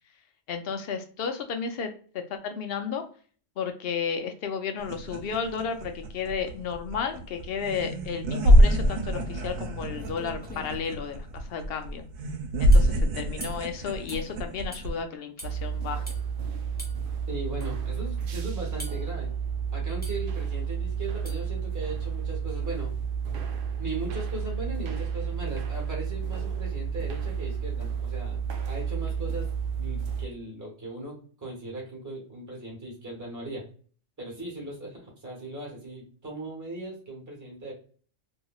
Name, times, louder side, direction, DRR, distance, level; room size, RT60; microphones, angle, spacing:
voice 1, 0.5-1.9 2.3-3.1 3.6-12.0 12.6-16.0, left 6 dB, 60° left, 7 dB, 0.7 m, -33 dB
sound 1, 4.8-15.0, equal, 85° right, 1.0 m, -25 dB
sound 2, 9.6-9.7 9.9-10.9 12.7-12.9 13.4-13.7 14.1-14.3 14.7-14.9 15.4-15.5 16.1-16.2 16.8-17.0 17.6-17.7 18.8-19.1 20.0-20.3 21.2-21.5, equal, 10° left, 0.6 m, -42 dB
sound 3, 15.4-30.3, right 7 dB, 65° right, 0.5 m, -31 dB
voice 2, 17.3-19.3 19.7-22.9 23.8-29.5 29.8-33.6 34.2-37.7, right 2 dB, 15° right, -2 dB, 1.1 m, -38 dB
3.0 x 2.7 x 2.2 m, 0.43 s
omnidirectional pair, 1.3 m